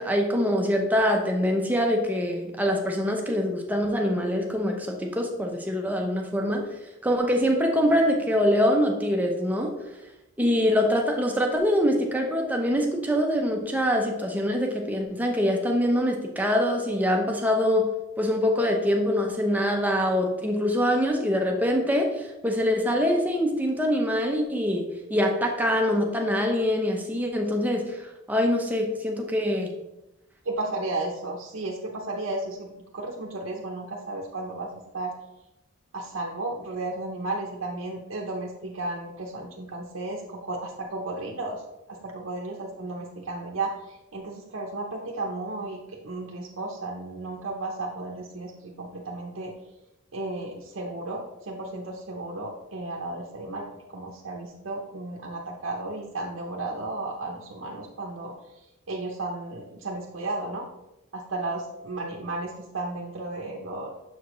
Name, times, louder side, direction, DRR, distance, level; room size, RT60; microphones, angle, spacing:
voice 1, 0.0-6.7 7.0-9.7 10.4-17.9 18.2-24.8 25.1-29.7, equal, 10° right, 2 dB, 0.7 m, -24 dB
voice 2, 30.4-34.7 34.9-35.1 35.9-41.6 41.9-43.7 44.1-45.8 46.0-49.5 50.1-53.6 53.9-58.3 58.9-60.6 61.1-63.9, right 2 dB, 80° right, -1 dB, 0.8 m, -33 dB
6.9 x 4.9 x 3.1 m, 0.95 s
head